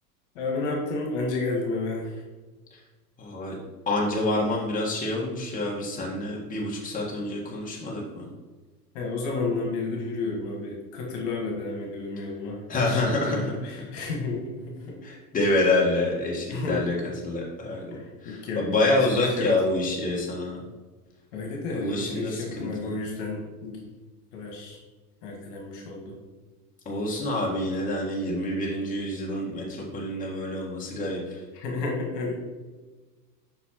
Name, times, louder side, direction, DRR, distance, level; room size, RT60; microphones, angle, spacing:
voice 1, 0.4-2.2 8.9-15.0 16.5-17.0 17.9-19.0 19.4-19.5 21.3-23.9 24.3-24.8 25.2-26.2 31.5-32.3, left 3 dB, 50° left, -1 dB, 1.8 m, -31 dB
voice 2, 3.2-3.5 3.8-8.3 12.7-13.5 15.0-16.9 17.2-20.6 21.7-22.9 26.8-31.4, left 2 dB, 15° left, -3 dB, 1.6 m, -27 dB
7.9 x 5.9 x 3.0 m, 1.3 s
figure-of-eight pair, 85°, 48 cm